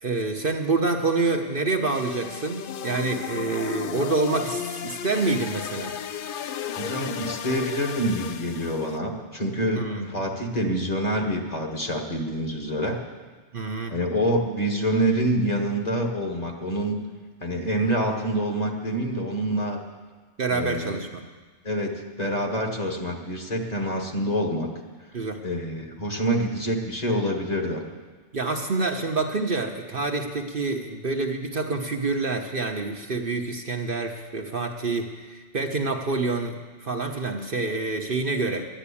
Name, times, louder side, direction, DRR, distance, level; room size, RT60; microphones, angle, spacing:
voice 1, 0.0-6.0 9.7-10.1 13.5-14.0 20.4-21.2 25.1-25.4 28.3-38.7, right 3 dB, 50° right, 3 dB, 1.0 m, -27 dB
sound 1, 1.9-9.0, left 8 dB, 60° left, 0.6 m, -34 dB
voice 2, 6.8-13.0 13.9-17.0 17.4-19.8 20.5-21.0 21.6-24.7 25.4-27.8, equal, 35° left, 1 dB, 1.6 m, -26 dB
11.5 x 10.0 x 8.5 m, 1.4 s
omnidirectional pair, 1.3 m